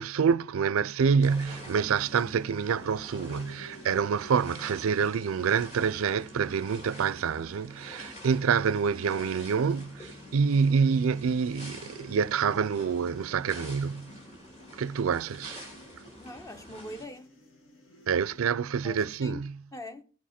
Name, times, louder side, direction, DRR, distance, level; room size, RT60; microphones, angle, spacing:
voice 1, 0.0-14.1 14.7-15.6 18.1-19.6, right 6 dB, 80° right, 0.4 m, -27 dB
sound 1, 1.0-18.5, left 1 dB, 70° left, 2.1 m, -53 dB
sound 2, 1.2-17.0, equal, 30° left, 2.8 m, -48 dB
voice 2, 16.2-17.3 18.8-19.4 19.7-20.0, left 1 dB, 15° left, 0.6 m, -42 dB
15.5 x 7.2 x 4.3 m
head